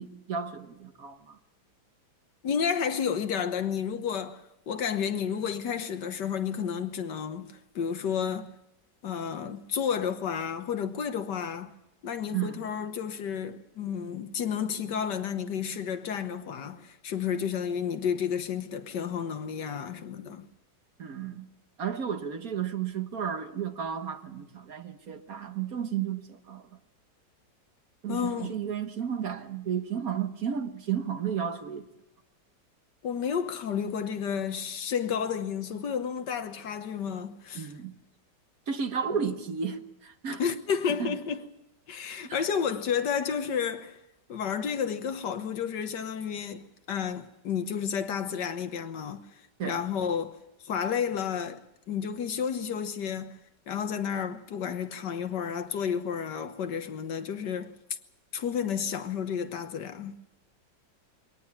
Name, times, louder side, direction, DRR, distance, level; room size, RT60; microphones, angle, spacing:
voice 1, 0.0-1.4 12.3-12.6 21.0-21.5 21.8-26.6 28.0-31.9 37.5-37.9 38.7-40.4 41.0-41.2 42.2-42.4 49.6-49.8, right 7 dB, 55° right, 1.6 m, -33 dB
voice 2, 2.4-4.4 4.7-8.5 9.0-11.7 12.0-20.4 28.1-28.5 33.0-37.7 39.1-39.2 40.4-41.4 41.9-44.0 44.3-49.2 49.6-50.4 50.6-51.6 51.9-53.4 53.7-57.7 58.3-60.2, left 7 dB, 75° left, 1.8 m, -31 dB
23.0 x 18.0 x 7.2 m
omnidirectional pair, 1.9 m